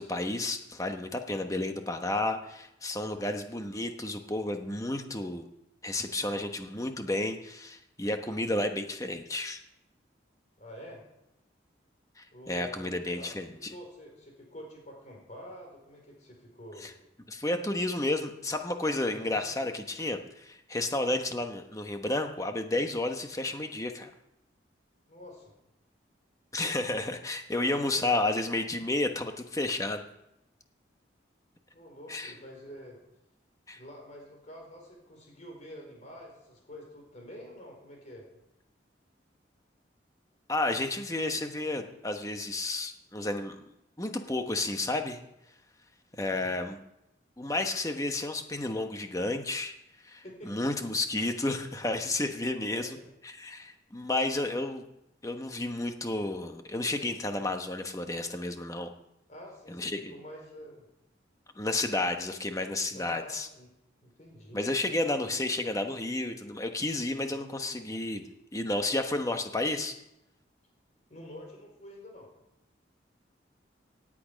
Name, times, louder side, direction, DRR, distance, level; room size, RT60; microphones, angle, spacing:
voice 1, 0.0-5.4 5.8-9.6 12.2-13.7 16.8-16.9 17.3-24.1 26.5-30.0 32.1-32.3 33.7-33.8 40.5-43.7 44.0-45.2 46.2-46.8 47.4-49.7 50.0-53.0 53.2-54.8 55.2-58.9 59.7-60.1 61.6-63.5 64.5-68.2 68.5-70.0, left 2 dB, 20° left, 6 dB, 1.1 m, -31 dB
voice 2, 10.6-11.0 12.3-16.9 19.1-19.4 25.1-25.5 27.7-28.1 31.7-33.0 33.7-38.3 46.3-46.5 50.2-50.5 52.5-53.1 59.3-60.8 62.9-63.7 64.0-64.6 71.1-72.3, equal, 40° left, 0 dB, 4.4 m, -47 dB
17.5 x 8.7 x 5.1 m, 0.85 s
head